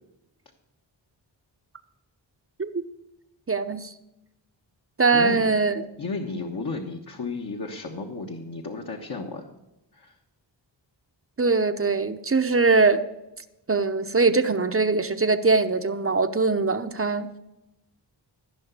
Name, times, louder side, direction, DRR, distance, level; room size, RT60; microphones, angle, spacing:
voice 1, 3.5-3.9 5.0-5.8 11.4-13.0 13.7-17.3, right 4 dB, 30° right, 9 dB, 0.7 m, -22 dB
voice 2, 5.1-5.5 6.0-9.5 9.9-10.2, left 3 dB, 50° left, 1 dB, 1.3 m, -33 dB
15.5 x 5.7 x 8.1 m, 0.95 s
cardioid pair, 65°, 45 cm